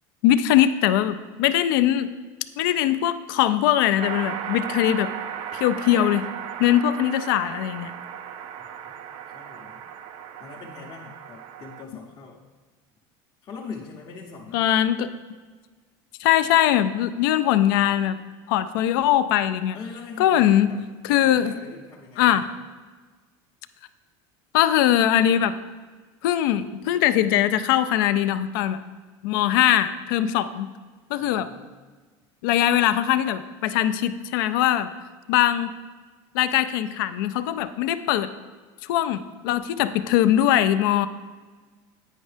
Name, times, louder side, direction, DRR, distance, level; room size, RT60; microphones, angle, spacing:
voice 1, 0.2-2.1 2.6-5.1 5.5-6.3 6.6-7.9 14.5-15.1 16.2-18.2 18.5-19.8 20.2-20.7 21.0-21.5 22.2-22.4 24.5-25.5 26.2-28.8 29.2-30.7 31.1-31.5 32.4-34.9 35.3-35.7 36.3-38.3 38.8-41.1, left 11 dB, 90° left, 12 dB, 0.4 m, -21 dB
sound 1, 4.0-11.8, right 9 dB, 60° right, 0.4 m, -36 dB
voice 2, 9.3-9.8 10.4-12.4 13.4-14.7 19.7-22.6 31.2-31.7, left 5 dB, 35° left, -2 dB, 0.6 m, -42 dB
9.0 x 5.3 x 3.3 m, 1.4 s
cardioid pair, 145°, 11 cm